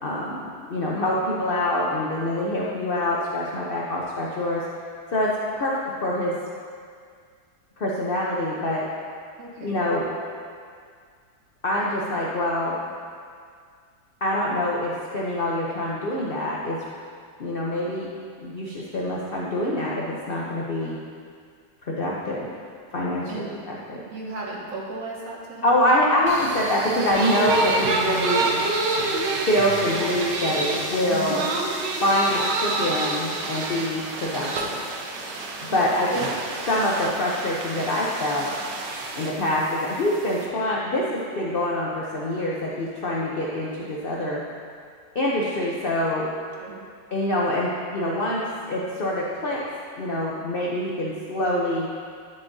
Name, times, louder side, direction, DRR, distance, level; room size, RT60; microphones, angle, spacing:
voice 1, 0.0-4.6 5.1-6.3 7.8-8.9 9.6-10.1 11.6-12.8 14.2-16.8 17.4-18.1 18.4-20.9 21.9-22.5 22.9-24.0 25.6-28.4 29.4-31.4 32.0-34.8 35.6-36.2 36.7-38.5 39.1-44.4 45.1-46.3 47.1-48.4 48.7-49.6 50.0-51.9, left 1 dB, 55° left, -4 dB, 0.6 m, -25 dB
voice 2, 9.4-9.8 23.3-23.5 24.1-25.8 31.1-31.6 35.7-36.1 46.6-46.8, right 3 dB, 55° right, -3 dB, 1.4 m, -36 dB
sound 1, 26.3-40.5, right 3 dB, 80° right, 1.4 m, -28 dB
9.9 x 7.1 x 2.7 m, 2.1 s
omnidirectional pair, 1.9 m